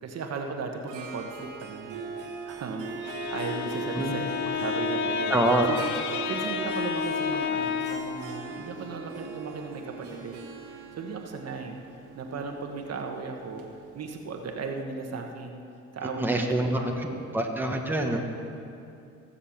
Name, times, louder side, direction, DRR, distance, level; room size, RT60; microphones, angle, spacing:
voice 1, 0.0-2.1 2.5-5.3 5.7-10.4 10.9-11.8 12.1-13.7 13.9-15.6 15.9-17.3 18.1-18.2, right 4 dB, 55° right, 3 dB, 1.3 m, -36 dB
Harp, 0.9-14.4, right 4 dB, 85° right, 1.5 m, -38 dB
Bowed string instrument, 2.9-8.2, left 9 dB, 65° left, 0.7 m, -31 dB
voice 2, 5.3-5.7 16.2-18.2, right 1 dB, 5° right, 1 dB, 1.4 m, -26 dB
16.0 x 6.9 x 7.3 m, 2.6 s
cardioid pair, 90°, 30 cm